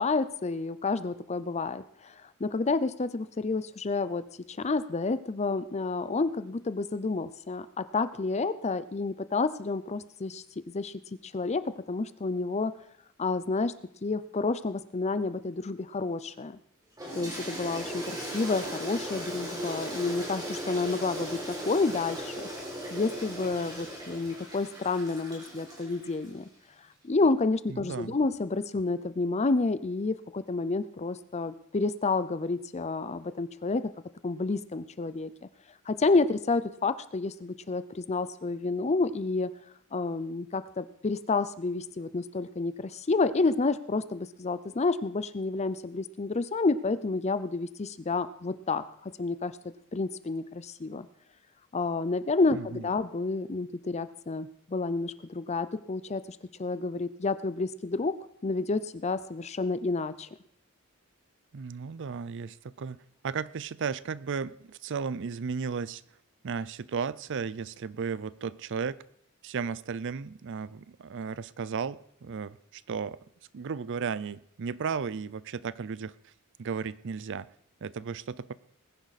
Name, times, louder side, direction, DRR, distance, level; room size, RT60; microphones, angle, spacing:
voice 1, 0.0-2.1 2.4-10.4 10.7-12.7 13.2-13.7 14.0-16.6 17.1-22.3 22.9-26.5 27.0-33.8 34.2-35.3 35.9-39.5 39.9-49.5 49.9-51.1 51.7-58.1 58.4-60.3, left 3 dB, 30° left, 0.5 m, -29 dB
Toilet flush, 17.0-26.3, equal, 20° right, 4.2 m, -38 dB
voice 2, 27.7-28.2 52.5-52.8 61.5-66.0 66.4-69.0 69.4-73.2 73.5-76.3 76.6-77.5 77.8-78.5, right 5 dB, 60° right, 0.5 m, -35 dB
19.5 x 10.5 x 4.2 m
head